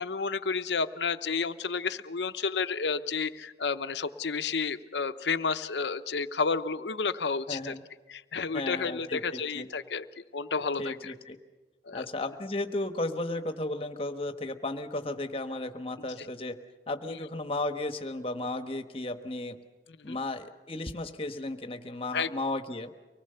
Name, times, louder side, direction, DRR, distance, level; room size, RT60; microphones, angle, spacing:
voice 1, 0.0-7.7 8.1-10.9 11.8-12.1 20.0-20.2 22.1-22.3, left 5 dB, 75° left, 11 dB, 0.8 m, -31 dB
voice 2, 7.5-7.8 8.5-9.7 10.8-11.4 11.9-16.6 16.9-19.6 20.0-22.9, left 2 dB, 30° left, 7 dB, 1.2 m, -34 dB
24.5 x 19.5 x 6.8 m, 1.2 s
head